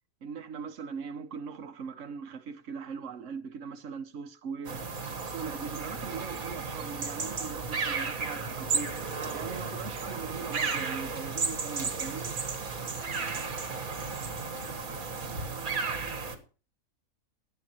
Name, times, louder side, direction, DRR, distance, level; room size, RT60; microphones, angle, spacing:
voice 1, 0.2-4.8 5.2-8.9 9.3-12.4, right 6 dB, 60° right, 1.4 m, -40 dB
sound 1, 4.6-16.3, right 4 dB, 75° right, 2.1 m, -34 dB
voice 2, 13.6-16.5, equal, 30° right, 7.9 m, -57 dB
19.0 x 9.0 x 3.0 m
omnidirectional pair, 1.5 m